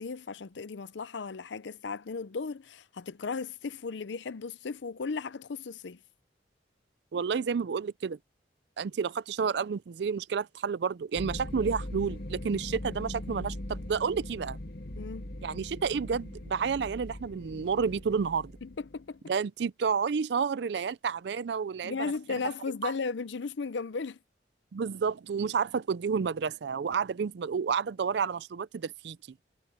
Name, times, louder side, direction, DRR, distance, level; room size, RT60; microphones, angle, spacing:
voice 1, 0.0-6.0 14.9-15.3 18.6-19.2 21.8-24.2, left 4 dB, 85° left, 0.6 m, -36 dB
voice 2, 7.1-8.2 8.8-14.6 15.4-18.5 19.3-22.1 22.8-22.9 24.7-29.2, right 6 dB, 70° right, 0.4 m, -30 dB
sound 1, 11.1-19.1, left 1 dB, 55° left, 1.7 m, -40 dB
head